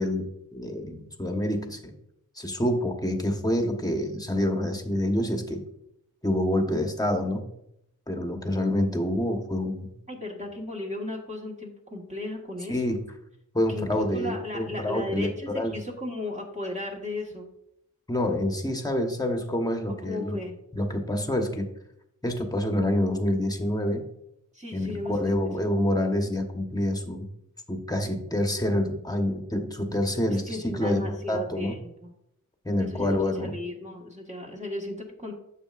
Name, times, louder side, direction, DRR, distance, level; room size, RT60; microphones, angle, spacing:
voice 1, 0.0-1.9 2.4-5.6 6.2-7.5 8.1-9.9 12.7-13.0 13.5-15.8 18.1-20.4 20.7-21.7 22.2-24.1 24.7-27.3 27.7-31.7 32.6-33.5, left 1 dB, 10° left, 4 dB, 1.2 m, -27 dB
voice 2, 10.1-13.0 13.7-17.5 20.0-20.6 24.5-25.1 25.4-25.5 30.3-32.1 32.8-35.3, left 2 dB, 20° right, -2 dB, 1.5 m, -35 dB
8.9 x 6.6 x 2.5 m, 0.80 s
wide cardioid pair, 55°, 32 cm